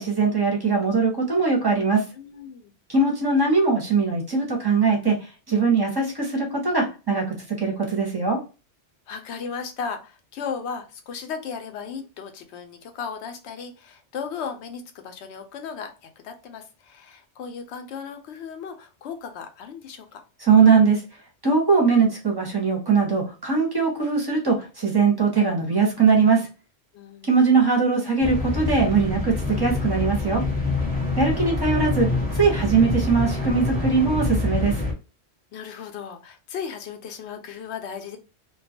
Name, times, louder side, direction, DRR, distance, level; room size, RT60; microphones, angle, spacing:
voice 1, 0.0-2.0 2.9-8.4 20.4-21.0 21.4-26.5 27.2-30.4 31.2-34.8, right 4 dB, 25° right, -2 dB, 0.6 m, -21 dB
voice 2, 2.1-2.7 9.1-20.2 26.9-27.3 35.5-38.2, left 6 dB, 80° left, 7 dB, 0.9 m, -36 dB
sound 1, 28.2-34.9, left 2 dB, 10° left, 0.8 m, -26 dB
2.3 x 2.3 x 2.6 m, 0.32 s
omnidirectional pair, 1.1 m